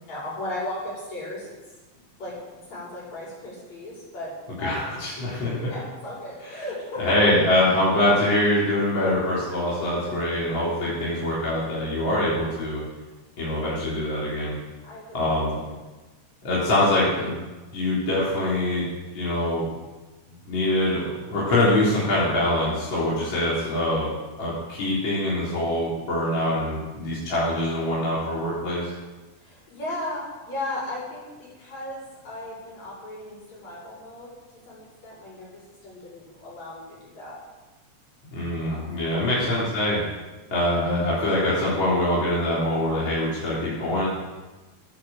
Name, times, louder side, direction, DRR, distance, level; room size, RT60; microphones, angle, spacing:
voice 1, 0.0-1.5 2.2-2.4 2.7-4.9 5.5-7.2 7.5-7.6 14.8-15.7 29.4-34.3 34.7-37.4 38.6-38.9 39.2-39.4 41.2-41.4, left 1 dB, 55° left, -6 dB, 6.5 m, -36 dB
voice 2, 4.6-5.5 7.0-12.8 13.4-14.6 15.1-15.6 16.4-17.4 17.7-18.8 19.1-19.7 20.5-24.1 24.4-28.9 38.3-40.0 40.5-44.1, left 1 dB, 35° left, -8 dB, 4.2 m, -24 dB
13.5 x 9.1 x 7.7 m, 1.2 s
omnidirectional pair, 3.7 m